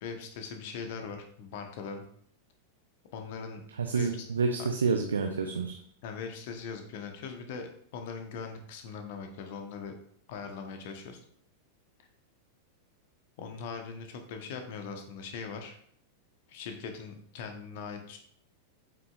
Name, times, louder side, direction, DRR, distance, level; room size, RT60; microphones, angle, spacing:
voice 1, 0.0-2.0 3.1-3.6 3.9-4.3 4.6-4.7 6.0-9.9 10.3-11.2 13.4-15.8 16.5-18.2, left 5 dB, 50° left, 5 dB, 1.1 m, -40 dB
voice 2, 3.8-5.8, right 4 dB, 70° right, 5 dB, 0.6 m, -28 dB
7.6 x 5.7 x 2.5 m, 0.64 s
figure-of-eight pair, 90°, 0 cm